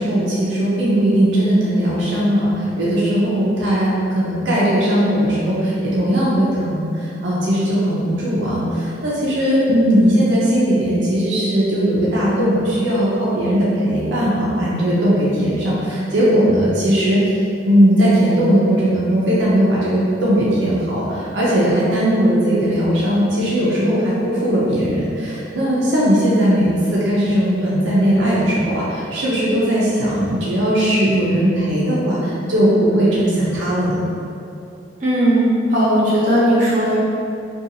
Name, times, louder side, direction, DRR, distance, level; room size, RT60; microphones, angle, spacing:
voice 1, 0.0-17.2 17.6-34.0, equal, 80° right, -7 dB, 0.5 m, -18 dB
voice 2, 35.0-37.0, right 1 dB, 40° right, -8 dB, 0.7 m, -16 dB
2.6 x 2.3 x 2.7 m, 2.5 s
head